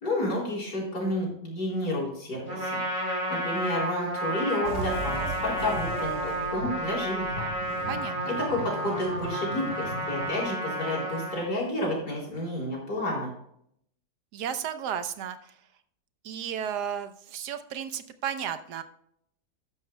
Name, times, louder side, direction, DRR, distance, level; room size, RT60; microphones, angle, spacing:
voice 1, 0.0-2.8 3.3-7.4 8.3-13.3, left 1 dB, 85° left, -3 dB, 4.7 m, -30 dB
Trumpet, 2.5-11.5, right 1 dB, 20° right, 3.6 m, -31 dB
sound 1, 4.6-10.4, right 1 dB, 45° right, 3.2 m, -37 dB
voice 2, 7.9-8.4 14.3-15.6 16.2-18.8, right 8 dB, 85° right, 10 dB, 1.4 m, -34 dB
13.0 x 10.5 x 2.2 m, 0.70 s
omnidirectional pair, 1.7 m